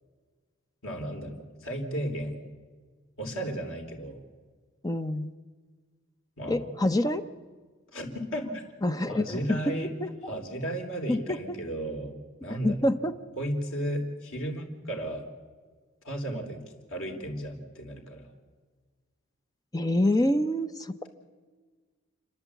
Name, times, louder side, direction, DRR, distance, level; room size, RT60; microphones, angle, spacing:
voice 1, 0.8-2.4 3.2-4.2 6.4-6.7 7.9-8.6 9.1-9.9 10.2-12.1 12.4-12.8 13.4-15.3 16.0-16.6 16.9-18.3, right 1 dB, 85° left, 2 dB, 3.6 m, -34 dB
voice 2, 4.8-5.3 6.5-7.3 8.8-9.4 9.7-9.8 10.0-10.1 11.1-11.4 12.6-13.1 19.7-20.9, left 1 dB, 20° left, 9 dB, 0.8 m, -26 dB
29.5 x 11.0 x 8.3 m, 1.5 s
head